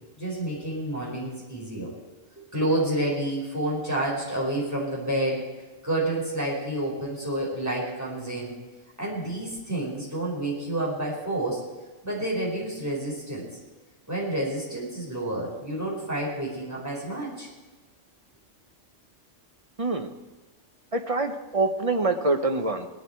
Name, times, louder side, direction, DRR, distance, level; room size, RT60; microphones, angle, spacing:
voice 1, 0.2-2.0 2.5-5.5 5.8-8.5 9.0-11.6 12.0-13.5 14.1-17.5, right 1 dB, 15° right, -5 dB, 4.8 m, -29 dB
voice 2, 20.9-22.9, right 2 dB, 30° right, 6 dB, 1.1 m, -25 dB
19.0 x 11.5 x 4.6 m, 1.2 s
omnidirectional pair, 1.3 m